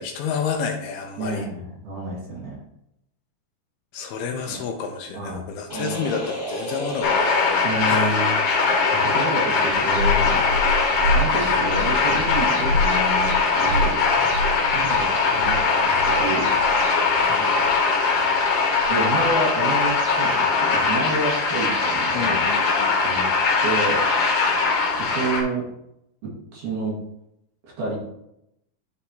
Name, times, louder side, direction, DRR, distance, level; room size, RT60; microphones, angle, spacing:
voice 1, 0.0-1.5 3.9-8.1 11.4-11.6 15.3-15.6 17.2-17.6 22.1-22.9, left 6 dB, 80° left, 3 dB, 2.5 m, -30 dB
voice 2, 1.2-2.6 4.3-4.6 5.1-5.4 5.7-6.0 7.6-8.4 8.9-10.5 11.1-14.0 14.7-15.1 15.3-16.5 18.9-22.5 23.0-23.2 23.6-24.0 24.3-24.6 24.9-25.7 26.5-26.9 27.8-28.0, right 2 dB, 55° right, -5 dB, 2.8 m, -29 dB
sound 1, 5.7-8.3, equal, 20° left, 0.6 m, -33 dB
sound 2, 7.0-25.4, left 4 dB, 60° left, 2.3 m, -21 dB
sound 3, 9.7-20.1, left 1 dB, 70° right, 2.4 m, -29 dB
11.5 x 4.3 x 2.8 m, 0.80 s
omnidirectional pair, 4.8 m